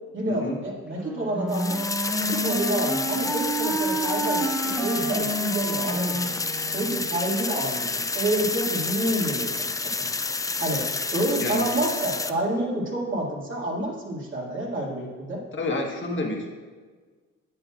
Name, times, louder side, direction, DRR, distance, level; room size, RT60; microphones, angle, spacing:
voice 1, 0.1-1.8 2.2-6.3 6.7-10.1 10.6-15.4, right 1 dB, 40° right, -4 dB, 2.2 m, -29 dB
Wind instrument woodwind instrument, 1.0-7.1, right 1 dB, 5° right, 0.9 m, -29 dB
sound 1, 1.5-12.3, left 3 dB, 10° left, 0.3 m, -29 dB
voice 2, 15.5-16.5, left 2 dB, 40° left, 0 dB, 1.4 m, -29 dB
10.5 x 8.0 x 2.5 m, 1.5 s
cardioid pair, 90°, 30 cm